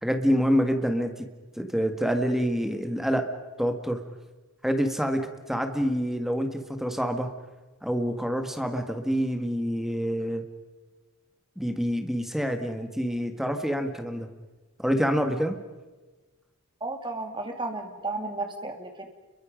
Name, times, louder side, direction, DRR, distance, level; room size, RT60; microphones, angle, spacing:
voice 1, 0.0-1.3 1.5-3.3 3.6-4.0 4.6-7.3 7.8-10.4 11.6-14.3 14.8-15.6, equal, ahead, 6 dB, 1.7 m, -27 dB
voice 2, 16.8-19.1, right 2 dB, 20° right, 4 dB, 2.3 m, -33 dB
29.5 x 23.0 x 5.2 m, 1.2 s
head